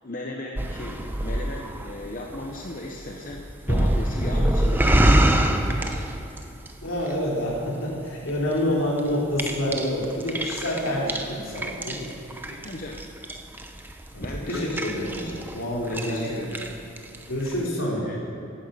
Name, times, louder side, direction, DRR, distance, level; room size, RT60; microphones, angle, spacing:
voice 1, 0.0-6.0 10.8-11.3 12.5-13.0 14.2-15.2 15.9-16.6 17.9-18.2, left 1 dB, 40° left, 0 dB, 0.8 m, -36 dB
sound 1, 0.6-6.7 7.0-7.7 8.2-8.5 9.0-15.6 15.8-16.3 16.5-17.2 17.5-17.6, right 1 dB, 10° right, 0.6 m, -25 dB
voice 2, 6.8-12.1 14.1-16.6 17.3-18.1, equal, 80° left, -4 dB, 3.4 m, -28 dB
11.0 x 10.0 x 6.8 m, 2.8 s
head